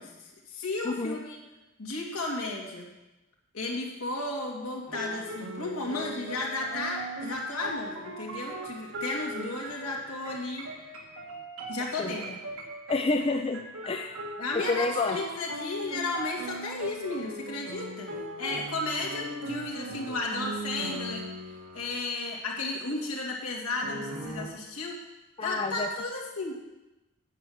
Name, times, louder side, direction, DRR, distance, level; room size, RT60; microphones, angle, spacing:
voice 1, 0.0-1.4 1.8-2.9 3.5-10.7 11.7-12.3 14.4-18.1 18.4-21.2 21.7-25.0 25.4-26.6, left 2 dB, 80° left, -1 dB, 2.3 m, -34 dB
voice 2, 0.8-1.2 12.0-12.2 12.9-14.2 14.7-15.2 25.4-25.9, left 3 dB, 25° left, 5 dB, 0.4 m, -29 dB
sound 1, 4.9-22.0 23.8-24.5, right 1 dB, 85° right, 1.7 m, -39 dB
9.1 x 7.5 x 6.4 m, 1.0 s
head